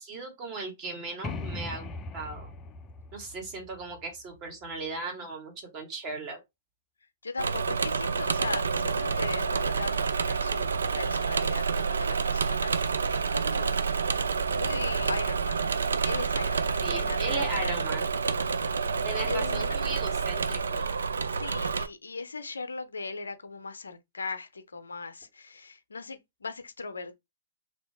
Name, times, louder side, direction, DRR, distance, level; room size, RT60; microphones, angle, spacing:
voice 1, 0.0-2.5 3.1-6.4 16.8-18.1 19.0-20.9, right 3 dB, 35° right, 1.7 m, -37 dB
sound 1, 1.2-4.9, left 3 dB, 25° left, 0.4 m, -40 dB
voice 2, 7.2-13.8 14.5-15.6 16.0-17.8 18.6-18.9 19.3-19.9 21.2-27.1, left 4 dB, 85° left, 0.5 m, -38 dB
Engine / Mechanisms, 7.4-21.9, right 5 dB, 80° right, 0.4 m, -28 dB
2.8 x 2.7 x 3.4 m
hypercardioid pair, 115°, 0 cm